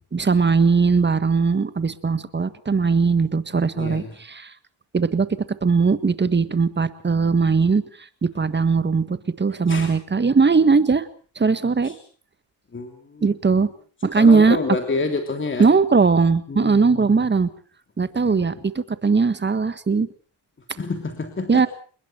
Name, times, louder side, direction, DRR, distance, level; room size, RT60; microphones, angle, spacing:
voice 1, 0.1-4.5 4.9-7.8 8.2-11.1 11.3-11.9 13.2-13.7 14.0-14.6 15.6-17.5 18.0-20.1 21.5-21.7, right 4 dB, 20° right, 13 dB, 1.6 m, -19 dB
voice 2, 3.8-4.1 9.7-9.9 11.8-12.0 12.7-13.3 14.1-15.7 16.5-17.2 18.2-18.4 20.8-21.7, left 4 dB, 25° left, 5 dB, 3.2 m, -28 dB
28.0 x 21.0 x 4.5 m, 0.43 s
cardioid pair, 105°, 48 cm